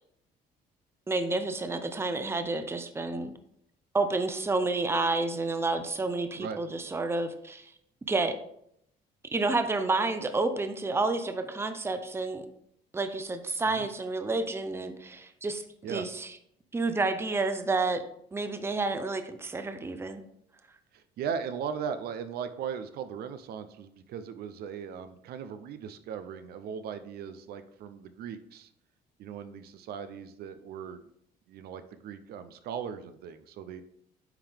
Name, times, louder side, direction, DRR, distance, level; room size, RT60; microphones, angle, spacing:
voice 1, 1.1-3.3 3.9-7.7 8.1-8.4 9.3-12.4 12.9-15.6 15.9-16.3 16.7-18.0 18.3-20.2, right 3 dB, 15° right, 8 dB, 0.6 m, -30 dB
voice 2, 20.9-28.7 29.2-31.0 31.5-33.8, right 7 dB, 70° right, 10 dB, 0.6 m, -38 dB
9.1 x 3.7 x 3.4 m, 0.71 s
cardioid pair, 110°, 17 cm